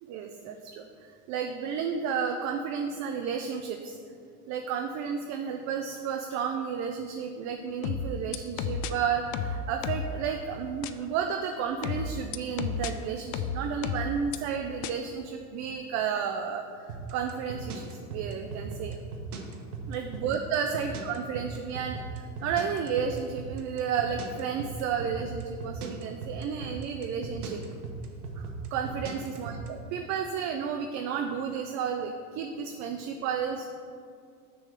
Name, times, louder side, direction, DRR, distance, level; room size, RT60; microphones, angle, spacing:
voice 1, 0.0-4.0 4.5-19.0 19.8-27.6 28.4-33.7, right 7 dB, 40° right, 5 dB, 0.5 m, -32 dB
sound 1, 7.8-8.9 9.3-10.1 10.8-10.9 11.8-12.9 13.3-14.4 14.8-14.9, left 6 dB, 65° left, 0.6 m, -31 dB
sound 2, 16.9-29.7, right 4 dB, 90° right, 1.0 m, -38 dB
6.3 x 3.9 x 6.3 m, 2.3 s
hypercardioid pair, 105°, 43 cm